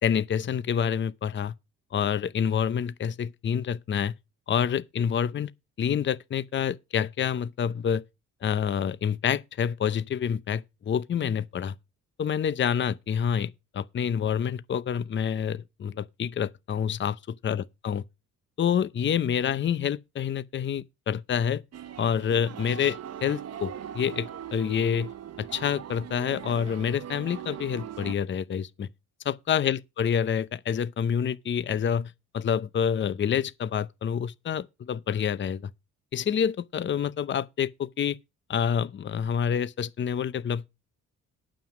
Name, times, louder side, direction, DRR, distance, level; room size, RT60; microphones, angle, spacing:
voice 1, 0.0-1.5 1.9-4.1 4.5-5.5 5.8-8.0 8.4-11.7 12.2-18.0 18.6-21.6 22.0-25.1 25.4-28.9 29.2-35.7 36.1-38.2 38.5-40.7, left 8 dB, 40° left, 0.7 m, -27 dB
sound 1, 21.7-28.1, right 10 dB, 55° right, 1.0 m, -40 dB
9.0 x 7.3 x 6.1 m
cardioid pair, 90°, 30 cm